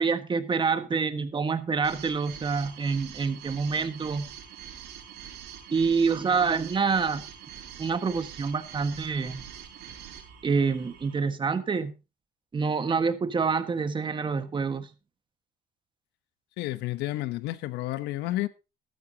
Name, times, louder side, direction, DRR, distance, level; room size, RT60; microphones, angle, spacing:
voice 1, 0.0-4.3 5.7-7.2 7.8-9.4 10.4-11.9 12.5-14.9, right 5 dB, 30° right, 1.5 m, -27 dB
sound 1, 1.8-11.2, right 9 dB, 80° right, 6.4 m, -44 dB
voice 2, 16.6-18.5, left 16 dB, 90° left, 0.9 m, -31 dB
15.0 x 12.5 x 2.9 m
cardioid pair, 110°, 17 cm